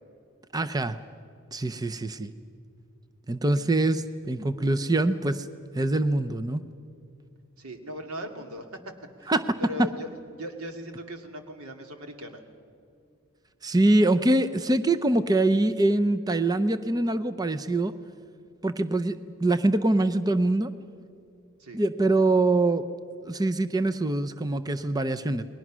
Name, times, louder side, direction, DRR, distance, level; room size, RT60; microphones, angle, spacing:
voice 1, 0.5-1.0 1.5-2.3 3.3-5.5 5.7-6.6 9.3-9.4 13.6-17.9 18.6-20.7 21.7-22.8 23.2-25.4, right 2 dB, 20° right, 10 dB, 0.6 m, -24 dB
voice 2, 7.6-8.7 9.2-9.3 9.6-10.1 10.4-12.4 21.6-21.8, equal, 90° right, 5 dB, 2.3 m, -38 dB
29.5 x 21.0 x 6.2 m, 2.4 s
head